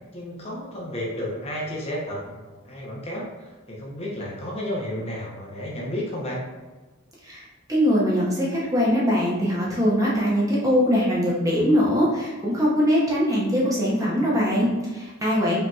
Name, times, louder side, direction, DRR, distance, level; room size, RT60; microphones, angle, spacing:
voice 1, 0.1-6.4, equal, 30° left, -4 dB, 0.7 m, -32 dB
voice 2, 7.7-15.6, equal, 15° right, -6 dB, 0.7 m, -22 dB
5.3 x 2.8 x 2.3 m, 1.3 s
head